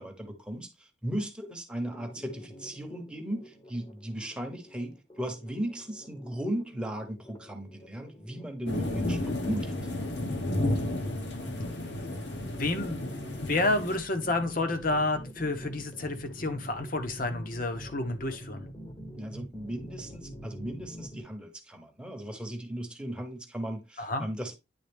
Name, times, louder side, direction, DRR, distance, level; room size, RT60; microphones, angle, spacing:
voice 1, 0.0-9.8 19.2-24.6, right 1 dB, 5° right, 1.0 m, -37 dB
sound 1, 1.8-21.2, equal, 25° left, 1.0 m, -46 dB
sound 2, 8.7-14.0, left 1 dB, 65° left, 1.3 m, -32 dB
voice 2, 12.4-13.1 13.5-18.6 24.0-24.3, left 2 dB, 45° left, 1.0 m, -30 dB
9.7 x 3.7 x 3.5 m
head